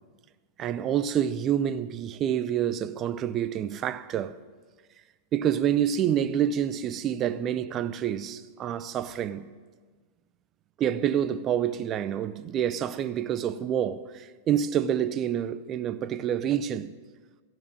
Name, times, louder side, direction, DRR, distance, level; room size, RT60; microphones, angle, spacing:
voice 1, 0.6-4.4 5.3-9.5 10.8-16.9, right 9 dB, 35° right, 0.6 m, -27 dB
14.5 x 6.2 x 9.4 m
figure-of-eight pair, 95°, 0 cm